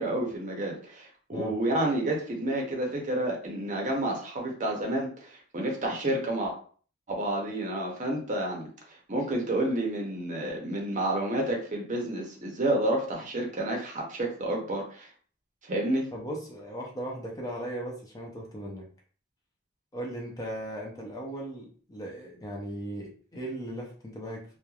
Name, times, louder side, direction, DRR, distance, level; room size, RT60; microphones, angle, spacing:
voice 1, 0.0-6.5 7.1-15.1 15.6-16.1, right 1 dB, 40° right, 0 dB, 0.7 m, -30 dB
voice 2, 16.1-18.9 19.9-24.6, right 1 dB, 20° left, -1 dB, 0.5 m, -37 dB
3.1 x 2.2 x 2.3 m, 0.43 s
head